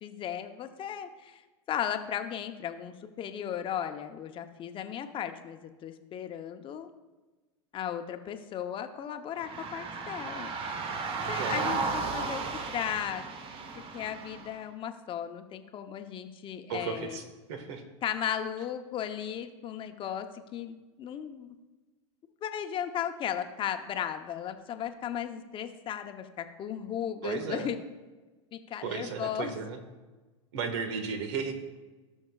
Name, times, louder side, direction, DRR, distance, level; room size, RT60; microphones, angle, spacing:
voice 1, 0.0-1.4 1.7-6.9 7.7-10.5 11.3-13.2 13.9-17.2 18.0-21.5 22.4-27.9 28.5-29.6, left 9 dB, 35° left, 7 dB, 0.8 m, -36 dB
sound 1, 9.4-14.6, right 4 dB, 35° right, 1.0 m, -34 dB
voice 2, 11.4-11.8 16.7-17.2 17.5-17.8 27.2-27.7 28.8-29.8 30.5-31.5, right 5 dB, 65° right, 6 dB, 1.6 m, -34 dB
18.0 x 6.4 x 2.4 m, 1.2 s
hypercardioid pair, 105°, 16 cm